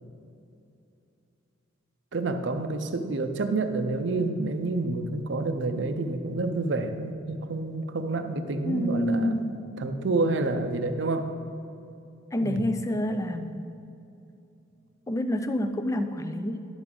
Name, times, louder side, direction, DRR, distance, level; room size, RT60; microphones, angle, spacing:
voice 1, 2.1-9.4 9.8-11.3 12.4-12.7, right 3 dB, 60° right, 8 dB, 0.5 m, -28 dB
voice 2, 8.6-9.6 12.3-13.7 15.1-16.7, equal, 15° left, 8 dB, 0.3 m, -28 dB
11.0 x 6.1 x 3.7 m, 2.7 s
head